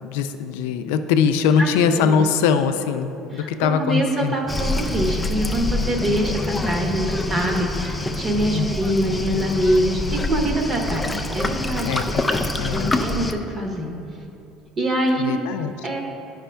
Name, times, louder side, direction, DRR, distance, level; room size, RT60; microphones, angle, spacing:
voice 1, 0.0-4.3 8.5-8.7 11.8-13.0 15.2-15.7, left 6 dB, 90° left, 9 dB, 0.4 m, -22 dB
voice 2, 1.6-2.3 3.3-12.0 12.7-13.9 14.8-15.4 15.8-16.0, right 1 dB, 30° right, 1 dB, 0.9 m, -24 dB
Waves surf, 4.5-13.3, left 2 dB, 10° left, 0.4 m, -26 dB
sound 1, 5.7-12.2, equal, 45° right, 1.1 m, -40 dB
10.0 x 5.2 x 3.4 m, 2.8 s
cardioid pair, 130°, 0 cm